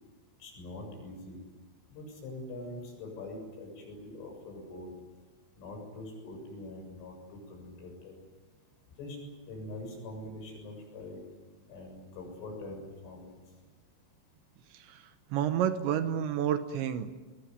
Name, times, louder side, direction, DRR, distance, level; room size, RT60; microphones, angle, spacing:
voice 1, 0.4-1.4 1.9-4.9 5.6-8.2 9.0-9.2 9.5-11.2 11.7-13.4, left 2 dB, 75° left, 3 dB, 9.6 m, -43 dB
voice 2, 14.7-17.2, right 9 dB, 75° right, 9 dB, 3.0 m, -30 dB
23.0 x 21.5 x 9.5 m, 1.3 s
omnidirectional pair, 5.8 m